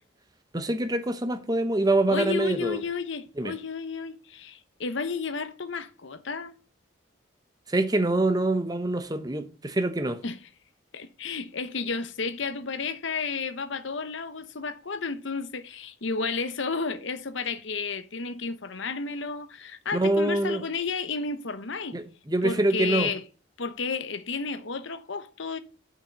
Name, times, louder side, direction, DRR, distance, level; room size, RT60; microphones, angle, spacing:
voice 1, 0.5-2.8 3.4-3.5 7.7-10.2 19.9-20.6 21.9-23.1, right 2 dB, 20° right, 0.8 m, -25 dB
voice 2, 2.1-6.5 10.2-10.4 10.9-22.0 22.4-23.2 23.6-25.6, left 4 dB, 65° left, 0.9 m, -32 dB
6.9 x 5.8 x 6.8 m
head